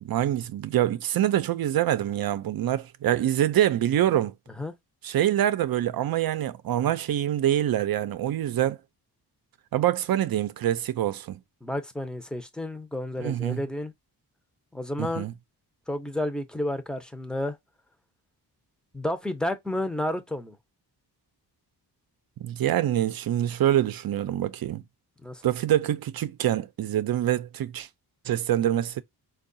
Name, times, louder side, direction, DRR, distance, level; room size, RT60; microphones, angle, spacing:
voice 1, 0.0-4.3 5.0-8.8 9.7-11.4 13.2-13.6 15.0-15.3 22.4-24.8 25.4-27.9 28.2-29.0, right 12 dB, 60° right, 0.5 m, -25 dB
voice 2, 11.6-13.9 14.7-15.3 15.9-17.6 18.9-20.6 25.2-25.4, left 1 dB, ahead, 0.6 m, -31 dB
4.5 x 2.3 x 2.6 m
wide cardioid pair, 125°, 40 cm